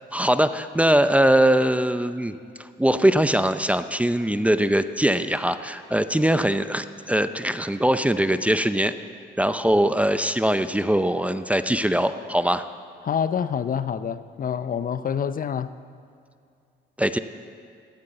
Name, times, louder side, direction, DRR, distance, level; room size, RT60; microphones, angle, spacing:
voice 1, 0.1-8.9 9.4-12.6 17.0-17.2, right 1 dB, 5° right, 11 dB, 0.6 m, -21 dB
voice 2, 13.0-15.7, left 7 dB, 45° left, 14 dB, 0.6 m, -27 dB
14.0 x 12.5 x 7.9 m, 2.4 s
cardioid pair, 90°, 20 cm